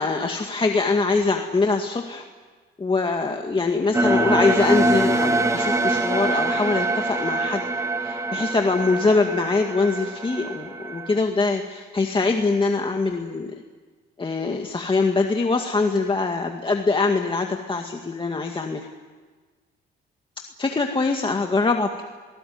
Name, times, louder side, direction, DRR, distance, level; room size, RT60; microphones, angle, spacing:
voice 1, 0.0-2.2 2.8-7.7 8.0-13.5 14.2-18.9 20.6-22.2, left 3 dB, 25° left, 3 dB, 2.1 m, -23 dB
sound 1, 3.9-11.2, right 2 dB, 15° right, 2.8 m, -24 dB
28.5 x 19.0 x 9.5 m, 1.4 s
cardioid pair, 90°, 20 cm